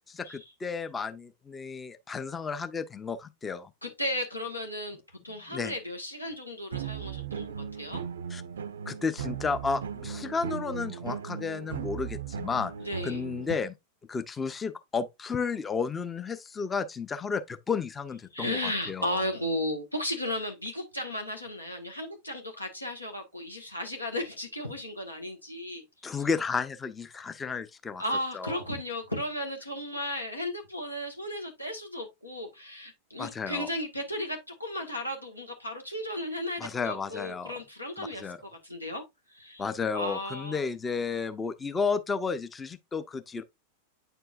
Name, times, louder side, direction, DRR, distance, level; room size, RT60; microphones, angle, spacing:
voice 1, 0.1-3.7 5.5-5.7 8.3-8.4 8.9-12.7 13.0-13.7 14.1-19.2 26.0-28.0 28.3-28.6 33.2-33.7 36.6-37.5 38.0-38.4 39.6-43.4, left 5 dB, 15° left, 0.6 m, -32 dB
voice 2, 3.8-8.0 12.8-13.2 18.3-26.1 28.0-39.0 39.3-39.6 39.9-40.6, left 1 dB, 85° left, 1.5 m, -35 dB
sound 1, 6.7-13.6, right 7 dB, 65° right, 0.4 m, -37 dB
8.9 x 4.5 x 2.5 m
figure-of-eight pair, 90°, 0 cm